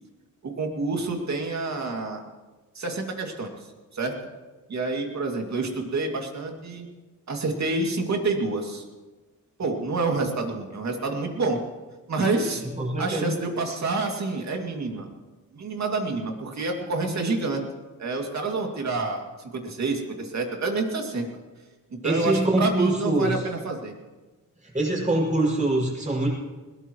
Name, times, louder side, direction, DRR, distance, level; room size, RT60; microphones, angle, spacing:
voice 1, 0.4-2.2 2.7-3.5 3.9-4.2 4.7-6.9 7.3-8.8 9.6-11.6 12.1-12.6 13.0-15.1 15.5-17.6 18.0-19.2 19.5-21.3 21.9-23.9, right 3 dB, 50° right, 2 dB, 2.5 m, -28 dB
voice 2, 12.6-13.4 22.0-23.4 24.6-26.3, right 1 dB, 20° right, -4 dB, 6.0 m, -24 dB
20.5 x 18.0 x 3.1 m, 1.2 s
cardioid pair, 105°, 34 cm